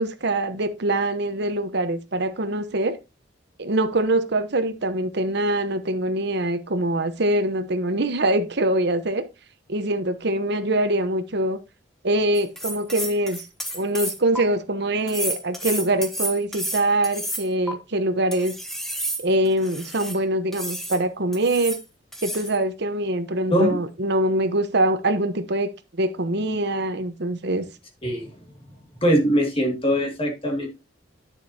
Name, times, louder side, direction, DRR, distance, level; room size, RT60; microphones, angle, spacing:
voice 1, 0.0-3.0 3.6-9.3 9.7-11.6 12.0-13.4 13.7-18.6 19.2-21.8 22.2-27.7, right 1 dB, 60° right, 1.0 m, -24 dB
sound 1, 12.3-14.4 15.1-17.7 18.3-20.2 20.5-21.0 21.3-21.8 22.1-22.6, right 1 dB, ahead, 1.2 m, -31 dB
voice 2, 29.0-30.7, equal, 30° left, 2.2 m, -21 dB
9.9 x 7.0 x 2.8 m
head